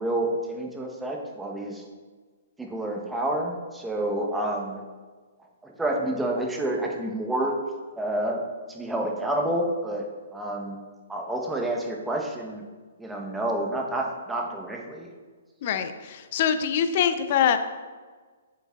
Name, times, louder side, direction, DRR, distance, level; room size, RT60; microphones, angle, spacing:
voice 1, 0.0-1.8 2.6-4.8 5.6-7.6 8.0-8.4 8.7-10.1 10.3-10.8 11.1-12.6 13.0-15.1, right 1 dB, 5° right, 0 dB, 0.9 m, -29 dB
voice 2, 15.6-17.6, left 8 dB, 50° left, 9 dB, 0.6 m, -24 dB
7.3 x 7.0 x 2.4 m, 1.4 s
hypercardioid pair, 125°, 0 cm